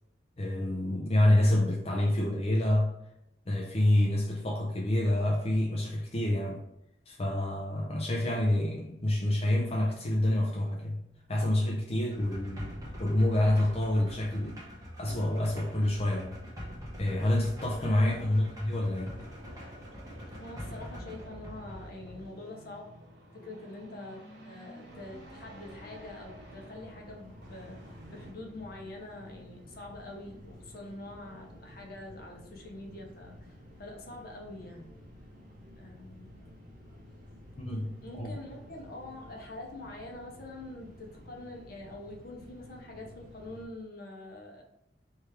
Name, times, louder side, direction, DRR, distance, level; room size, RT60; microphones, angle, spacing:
voice 1, 0.4-2.9 3.5-6.6 7.1-11.0 11.3-12.7 13.0-14.6 15.0-16.4 17.0-19.1 37.6-38.3, left 1 dB, 35° left, -2 dB, 0.6 m, -27 dB
sound 1, 12.1-22.3, equal, 20° right, 1.2 m, -44 dB
voice 2, 17.8-18.3 20.3-22.9 23.3-24.2 24.4-34.9 35.8-36.3 38.0-44.6, left 2 dB, 60° left, 1 dB, 0.9 m, -45 dB
sound 2, 19.0-28.3, equal, 85° right, 1.0 m, -51 dB
sound 3, 24.8-43.6, equal, 50° right, 1.2 m, -52 dB
3.4 x 3.2 x 4.6 m, 0.82 s
head